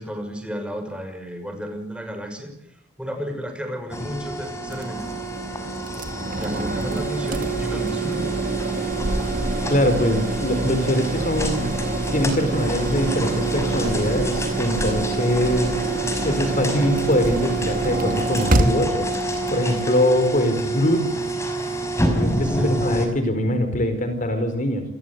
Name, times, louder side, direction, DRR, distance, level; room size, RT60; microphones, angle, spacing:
voice 1, 0.0-2.5 3.0-5.0 6.0-6.1 6.4-8.3 22.4-22.8, equal, 5° right, 7 dB, 6.1 m, -33 dB
sound 1, 3.9-23.1, right 3 dB, 15° left, 5.6 m, -28 dB
sound 2, 4.7-19.9, right 1 dB, 45° right, 2.6 m, -27 dB
voice 2, 9.7-11.7 12.1-15.8 16.2-19.0 19.5-21.2 22.1-24.8, left 1 dB, 40° left, 9 dB, 4.4 m, -22 dB
29.5 x 22.0 x 8.2 m, 0.73 s
head